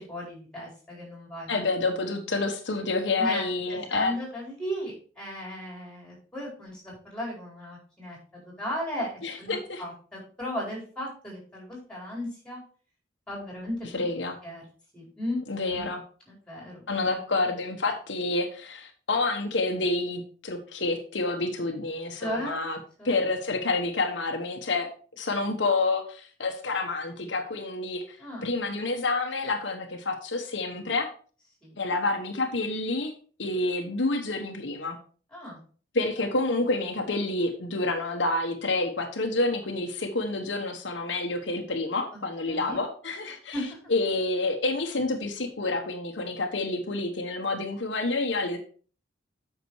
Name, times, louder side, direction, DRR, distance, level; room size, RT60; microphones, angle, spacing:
voice 1, 0.0-1.6 3.2-8.2 8.6-9.1 9.4-12.6 13.3-14.0 14.4-14.6 14.9-15.4 15.7-15.9 16.3-17.2 22.2-22.6 23.0-23.1 28.2-28.5 31.6-31.8 35.3-35.6 42.1-42.2 42.5-42.8 43.5-43.8, equal, 5° left, -2 dB, 4.3 m, -36 dB
voice 2, 1.5-4.1 9.2-9.8 13.9-14.4 15.5-16.0 16.9-22.8 23.0-24.9 25.2-31.1 31.8-33.1 33.4-35.0 35.9-43.6 43.9-48.6, left 2 dB, 70° left, 4 dB, 1.2 m, -28 dB
8.4 x 5.9 x 4.7 m, 0.42 s
head